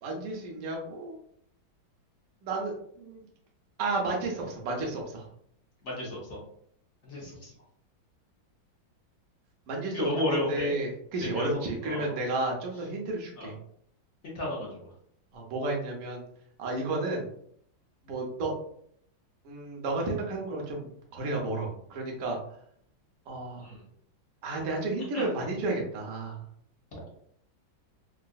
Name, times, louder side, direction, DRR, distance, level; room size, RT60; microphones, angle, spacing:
voice 1, 0.0-1.2 2.4-3.2 3.8-5.3 9.7-13.5 15.3-16.2 16.6-17.3 18.0-18.5 19.4-22.4 23.3-23.7 24.4-26.5, right 2 dB, 60° right, -1 dB, 1.0 m, -32 dB
voice 2, 5.8-6.4 7.0-7.5 9.9-10.7 11.2-11.5 11.8-12.1 13.4-13.5 14.2-14.8 23.6-23.8 25.1-25.3 26.9-27.0, left 1 dB, 50° left, -4 dB, 0.9 m, -33 dB
3.7 x 2.4 x 2.3 m, 0.65 s
omnidirectional pair, 2.2 m